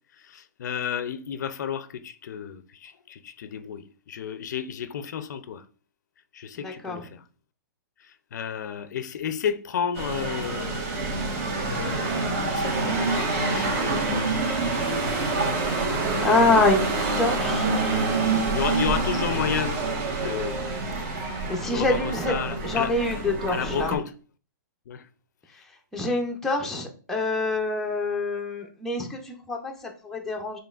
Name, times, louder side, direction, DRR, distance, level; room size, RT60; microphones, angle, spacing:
voice 1, 0.2-5.6 6.3-7.2 8.3-10.8 11.1-11.2 11.7-16.2 18.5-19.9 20.2-20.6 21.0-21.4 21.7-23.2 23.5-24.1 24.9-25.0, left 8 dB, 65° left, 0.5 m, -32 dB
voice 2, 6.6-7.1 16.2-16.9 17.2-17.7 18.3-18.4 21.4-22.3 22.6-24.0 25.9-30.6, left 2 dB, 5° left, 0.6 m, -25 dB
sound 1, 10.0-24.0, right 3 dB, 45° right, 1.5 m, -27 dB
6.8 x 3.2 x 2.4 m
hypercardioid pair, 155°, 10 cm